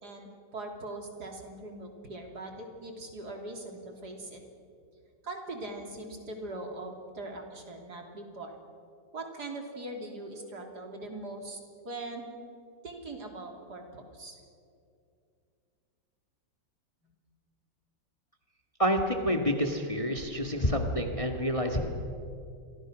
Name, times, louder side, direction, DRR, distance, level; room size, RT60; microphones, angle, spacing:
voice 1, 0.0-4.4 5.2-8.5 9.1-12.3 12.8-14.4, right 2 dB, 55° right, 2 dB, 3.6 m, -41 dB
voice 2, 18.8-21.9, equal, 20° left, 3 dB, 1.8 m, -28 dB
29.5 x 23.5 x 6.3 m, 2.5 s
omnidirectional pair, 2.1 m